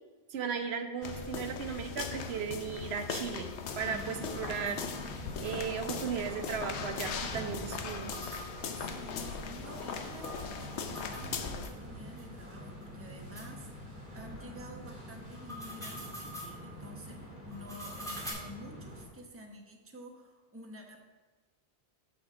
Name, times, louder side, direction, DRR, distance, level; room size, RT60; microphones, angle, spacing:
voice 1, 0.3-3.5 3.8-4.8 5.4-8.1, right 7 dB, 70° right, 7 dB, 1.0 m, -36 dB
sound 1, 1.0-11.7, left 6 dB, 90° left, 1.0 m, -39 dB
sound 2, 2.8-5.9 6.2-6.3 6.5-6.6 7.7-11.8 12.2-12.3 12.8-12.9 13.3-13.5 15.2-16.6 17.5-18.3, equal, 5° left, 1.8 m, -47 dB
sound 3, 3.6-19.1, equal, 45° right, 2.2 m, -46 dB
voice 2, 8.7-21.0, equal, 15° right, 1 dB, 0.9 m, -50 dB
6.5 x 6.0 x 6.1 m, 1.3 s
omnidirectional pair, 1.1 m